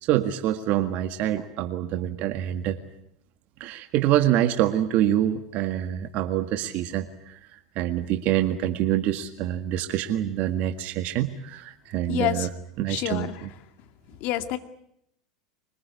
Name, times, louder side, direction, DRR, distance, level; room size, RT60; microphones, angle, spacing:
voice 1, 0.1-2.8 3.6-7.4 7.8-12.5 12.8-13.5, right 12 dB, 50° right, 7 dB, 1.8 m, -26 dB
voice 2, 12.1-12.5 12.9-13.3 14.2-14.6, left 13 dB, 55° left, 9 dB, 2.1 m, -27 dB
24.5 x 20.5 x 9.7 m, 0.74 s
hypercardioid pair, 85°, 3 cm